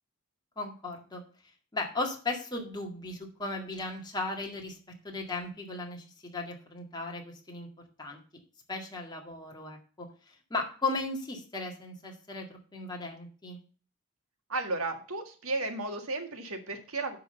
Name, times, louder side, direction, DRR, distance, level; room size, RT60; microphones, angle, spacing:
voice 1, 0.6-1.2 1.7-4.8 5.0-7.7 8.0-8.2 8.7-10.1 10.5-13.6, left 2 dB, 20° left, 0 dB, 2.0 m, -36 dB
voice 2, 14.5-17.2, right 2 dB, 75° right, 6 dB, 1.7 m, -34 dB
11.0 x 4.0 x 6.8 m, 0.39 s
head